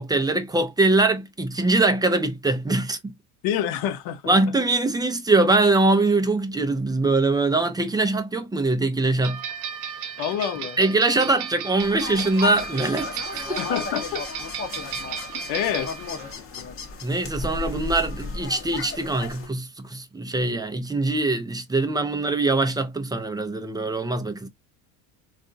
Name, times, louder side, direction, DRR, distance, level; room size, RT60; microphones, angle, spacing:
voice 1, 0.0-3.1 4.3-9.4 10.8-13.6 17.0-24.5, right 2 dB, 10° right, 0.5 m, -22 dB
voice 2, 3.4-4.3 10.2-10.8 13.6-14.2 14.8-15.0 15.3-15.9, left 10 dB, 55° left, 0.8 m, -27 dB
sound 1, 9.2-16.3, right 7 dB, 80° right, 0.9 m, -34 dB
sound 2, 11.8-19.5, left 4 dB, 30° left, 0.9 m, -34 dB
3.4 x 2.5 x 2.5 m
supercardioid pair, 100°, 45 cm